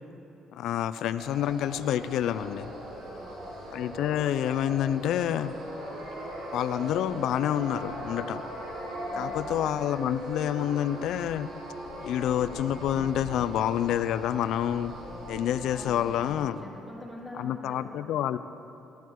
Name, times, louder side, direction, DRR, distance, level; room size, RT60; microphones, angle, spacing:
voice 1, 0.5-2.7 3.7-5.6 6.5-8.4 9.2-11.5 12.0-14.9 15.3-16.6 17.4-18.4, left 10 dB, 75° left, 13 dB, 0.5 m, -28 dB
sound 1, 1.2-16.3, equal, 70° right, 4.5 m, -39 dB
voice 2, 2.9-3.4 9.1-9.4 15.7-17.9, left 1 dB, 5° left, -5 dB, 3.9 m, -45 dB
18.5 x 13.0 x 4.7 m, 2.8 s
cardioid pair, 80°, 0 cm